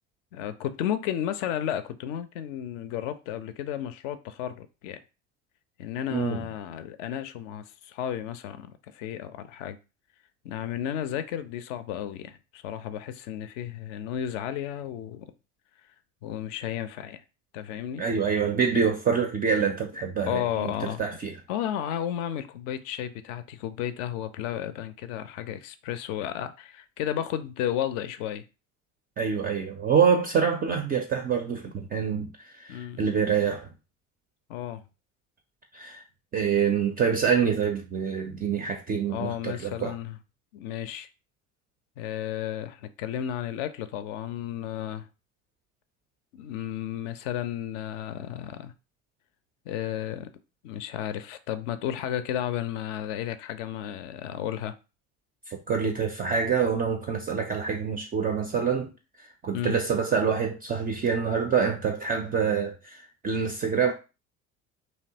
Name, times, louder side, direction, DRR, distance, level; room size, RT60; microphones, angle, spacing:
voice 1, 0.3-5.0 5.8-9.8 10.4-15.3 16.2-17.2 17.5-18.0 20.3-21.0 21.5-28.4 32.7-33.0 34.5-34.8 39.1-40.2 40.5-41.1 42.0-45.1 46.3-48.7 49.7-50.3 50.6-54.8 59.5-59.8, left 10 dB, 60° left, 0.5 m, -33 dB
voice 2, 6.1-6.4 18.0-20.7 21.0-21.3 29.2-33.7 35.7-36.0 36.3-39.9 55.5-58.9 59.2-63.9, right 6 dB, 25° right, 0.3 m, -26 dB
2.7 x 2.1 x 2.7 m
figure-of-eight pair, 60°, 42 cm